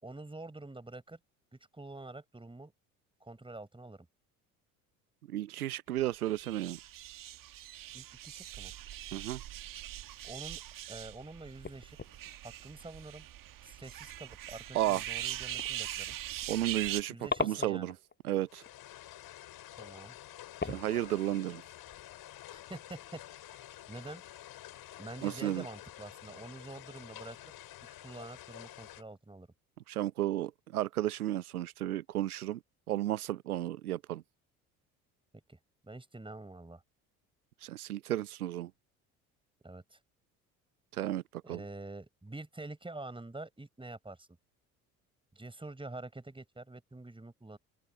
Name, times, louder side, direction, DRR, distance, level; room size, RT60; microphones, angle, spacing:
voice 1, 0.0-1.2 1.7-2.7 3.2-4.1 7.9-8.7 10.2-10.6 10.9-12.0 12.4-13.3 13.6-16.2 17.1-17.9 19.8-20.2 22.5-24.2 25.0-27.4 28.0-29.5 35.5-35.6 35.8-36.8 39.6-40.0 41.4-44.3 45.4-47.6, right 2 dB, 10° right, 5.5 m, -47 dB
voice 2, 5.3-6.8 9.1-9.4 14.7-15.0 16.5-17.9 18.2-18.6 20.6-21.6 25.2-25.6 29.9-32.6 32.9-34.2 37.6-38.7 40.9-41.6, right 13 dB, 85° right, 0.8 m, -33 dB
sound 1, 5.9-6.1 8.4-9.6 10.0-10.1 10.6-10.7 11.6-12.2 12.6-12.9 13.9-14.2 14.5-14.7 15.2-15.3 15.6-18.2 18.5-18.9 20.1-20.2 20.6-22.8 23.2-23.5 24.0-24.1, left 4 dB, 25° left, 6.0 m, -41 dB
sound 2, 6.2-17.0, right 13 dB, 50° right, 2.0 m, -42 dB
sound 3, 18.5-29.0, left 14 dB, 55° left, 5.6 m, -50 dB
open air
figure-of-eight pair, 55°, 43 cm